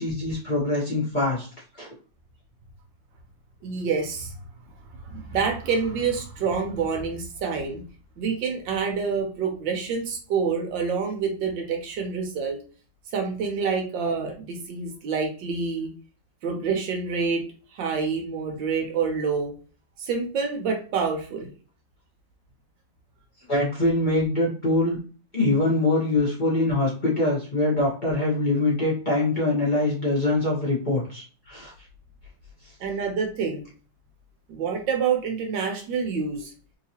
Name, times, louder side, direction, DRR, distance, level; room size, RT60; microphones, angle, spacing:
voice 1, 0.0-1.5 1.8-1.9 13.6-13.7 23.5-25.0 25.3-31.7, left 2 dB, 30° left, -6 dB, 1.1 m, -24 dB
voice 2, 3.6-4.3 5.1-7.8 8.2-12.6 13.1-15.9 16.4-17.4 17.7-19.5 20.0-21.5 32.8-33.6 34.5-36.5, right 5 dB, 80° right, 3 dB, 1.5 m, -27 dB
3.5 x 2.8 x 2.8 m, 0.39 s
omnidirectional pair, 2.0 m